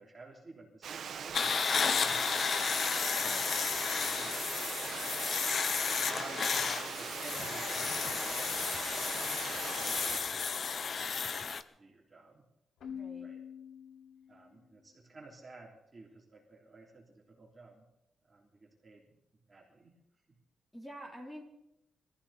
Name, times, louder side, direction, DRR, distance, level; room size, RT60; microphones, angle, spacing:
voice 1, 0.0-2.8 3.2-8.4 8.9-10.6 10.9-12.5 13.2-13.4 14.3-17.9 18.2-19.2 19.5-20.0 20.3-20.4, right 3 dB, 25° right, -1 dB, 3.3 m, -54 dB
Water, 0.8-10.2, right 7 dB, 65° right, 1.2 m, -41 dB
sound 1, 1.3-11.6, left 5 dB, 50° left, 0.8 m, -33 dB
voice 2, 3.1-3.5 12.9-13.3 20.7-21.4, equal, 10° left, 0 dB, 3.6 m, -47 dB
Keyboard (musical), 12.8-14.6, left 8 dB, 75° left, 1.8 m, -45 dB
23.5 x 14.5 x 4.3 m, 0.87 s
cardioid pair, 120°, 0 cm